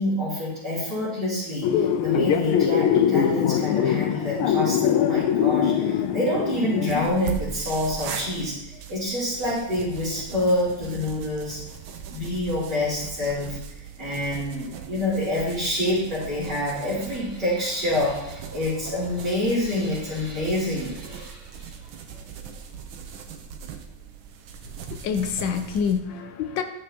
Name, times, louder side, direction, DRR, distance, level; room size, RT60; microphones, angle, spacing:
voice 1, 0.0-11.6 12.1-13.6 14.0-21.7, left 1 dB, 55° right, -11 dB, 3.7 m, -27 dB
sound 1, 1.6-7.1, left 9 dB, 90° left, 1.5 m, -22 dB
sound 2, 6.9-26.0, right 7 dB, 75° right, 1.5 m, -39 dB
voice 2, 24.9-26.6, left 7 dB, 70° left, 7 dB, 1.2 m, -26 dB
12.0 x 6.5 x 2.9 m, 0.86 s
omnidirectional pair, 2.3 m